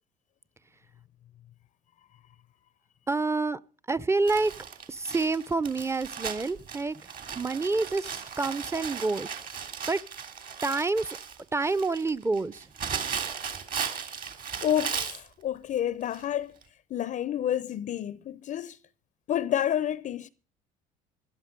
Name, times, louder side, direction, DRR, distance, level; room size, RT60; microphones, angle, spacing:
voice 1, 3.1-3.6 3.9-4.5 4.9-9.4 9.9-10.0 10.6-11.2 11.5-12.6, right 3 dB, 15° right, 0.6 m, -28 dB
Crumpling crinkling, 4.3-15.3 16.1-16.2 16.6-16.7, right 7 dB, 50° right, 3.0 m, -36 dB
voice 2, 14.6-16.6 16.9-18.8 19.3-20.3, left 10 dB, 45° left, 0.6 m, -29 dB
16.0 x 11.5 x 5.3 m
hypercardioid pair, 70°, 19 cm